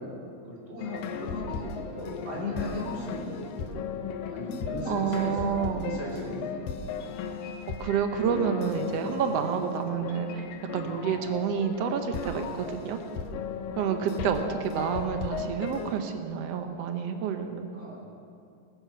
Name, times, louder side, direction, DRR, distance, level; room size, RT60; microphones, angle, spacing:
voice 1, 0.0-7.0 14.0-14.4 17.7-18.0, left 1 dB, 35° right, -6 dB, 3.6 m, -37 dB
sound 1, 0.8-16.0, left 6 dB, 90° left, 2.5 m, -36 dB
voice 2, 4.9-5.9 7.8-10.4 10.7-13.0 13.8-17.7, right 7 dB, 70° right, 6 dB, 1.6 m, -29 dB
21.0 x 9.2 x 6.1 m, 2.5 s
omnidirectional pair, 3.8 m